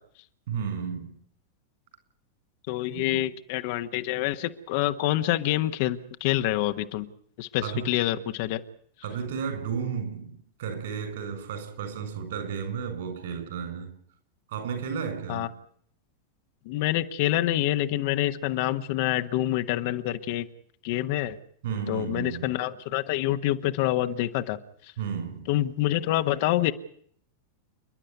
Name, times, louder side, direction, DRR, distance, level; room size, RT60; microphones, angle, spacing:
voice 1, 0.5-1.1 2.9-3.2 7.6-7.9 9.0-13.9 14.5-15.5 21.6-22.6 25.0-25.5, right 6 dB, 60° right, 9 dB, 7.4 m, -33 dB
voice 2, 2.7-7.1 7.4-8.6 15.3-15.5 16.6-20.5 20.8-21.4 21.9-24.6 24.8-24.9 25.5-26.7, left 14 dB, 50° left, 9 dB, 1.3 m, -27 dB
29.0 x 11.5 x 9.4 m, 0.63 s
figure-of-eight pair, 90°, 0 cm